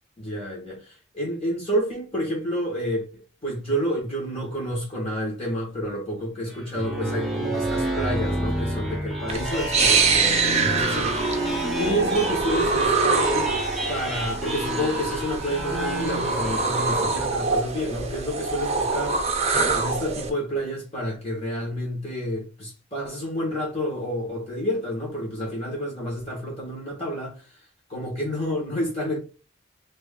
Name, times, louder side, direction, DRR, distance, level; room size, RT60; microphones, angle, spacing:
voice 1, 0.2-11.4 11.7-13.6 13.9-19.3 19.7-27.6 27.9-29.2, equal, 30° left, 1.6 m, -29 dB
sound 1, 6.5-17.3, right 1 dB, ahead, 0.8 m, -29 dB
sound 2, 9.3-20.3, right 4 dB, 35° right, 0.7 m, -25 dB
3.1 x 2.6 x 3.7 m
head